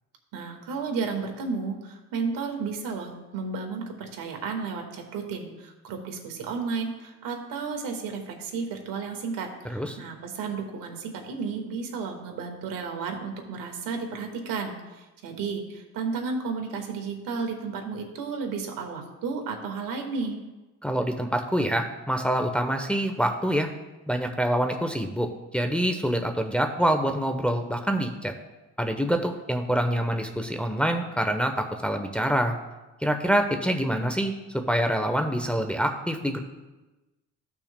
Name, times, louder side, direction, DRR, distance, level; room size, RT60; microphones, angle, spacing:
voice 1, 0.3-20.4, right 5 dB, 80° right, 3 dB, 1.8 m, -33 dB
voice 2, 20.8-23.7 24.1-28.3 28.8-32.6 33.0-36.4, equal, 5° left, 4 dB, 0.9 m, -26 dB
16.0 x 6.0 x 2.2 m, 1.1 s
supercardioid pair, 75°, 33 cm